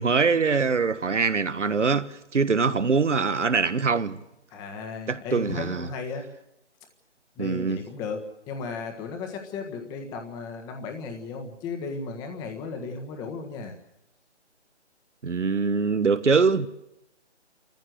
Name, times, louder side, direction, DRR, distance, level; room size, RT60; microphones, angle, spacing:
voice 1, 0.0-4.2 5.1-5.9 7.4-7.8 15.2-16.7, right 5 dB, 85° right, 1.5 m, -23 dB
voice 2, 4.5-6.3 7.3-13.7, left 4 dB, 10° left, 1.5 m, -35 dB
29.0 x 14.5 x 7.9 m
figure-of-eight pair, 155°, 35 cm